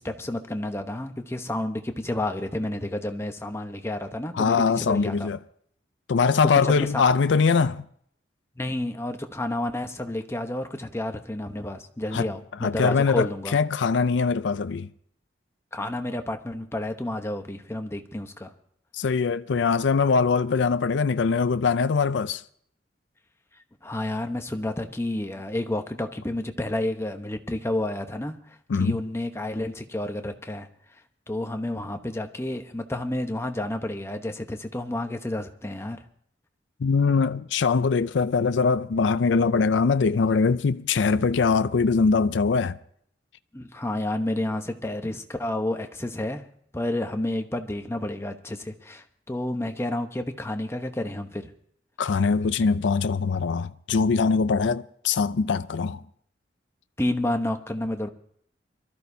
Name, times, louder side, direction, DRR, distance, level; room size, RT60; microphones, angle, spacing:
voice 1, 0.0-5.3 6.6-7.0 8.6-13.6 15.7-18.5 23.5-31.0 31.3-36.0 43.5-46.4 46.7-51.5 57.0-58.1, left 1 dB, 15° left, 0.9 m, -30 dB
voice 2, 4.4-5.4 6.1-7.8 12.1-12.3 12.6-14.9 18.9-22.4 28.7-29.0 36.8-42.8 52.0-56.0, left 5 dB, 80° left, 0.5 m, -22 dB
24.0 x 13.5 x 2.7 m
head